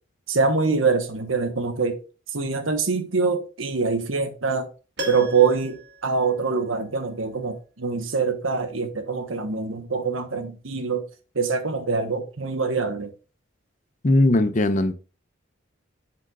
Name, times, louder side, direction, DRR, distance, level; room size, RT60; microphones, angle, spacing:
voice 1, 0.3-2.0 2.3-4.7 5.1-11.0 11.3-13.1, right 4 dB, 85° right, 1.3 m, -24 dB
Piano, 5.0-7.1 7.3-7.4, right 1 dB, 55° right, 1.8 m, -37 dB
voice 2, 14.0-14.9, left 1 dB, 40° left, 0.7 m, -19 dB
8.2 x 7.6 x 2.5 m
head